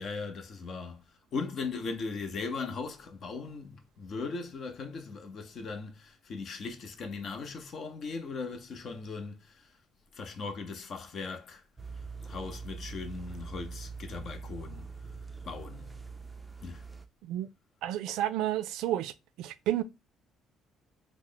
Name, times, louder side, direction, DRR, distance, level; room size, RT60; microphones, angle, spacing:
voice 1, 0.0-9.7 10.1-11.6 12.3-14.8 15.5-16.0 16.6-16.8, left 4 dB, 50° left, 0.6 m, -38 dB
sound 1, 11.8-17.1, right 4 dB, 10° right, 0.4 m, -43 dB
voice 2, 17.8-19.8, right 12 dB, 85° right, 0.3 m, -31 dB
3.0 x 2.0 x 3.7 m
cardioid pair, 130°, 0 cm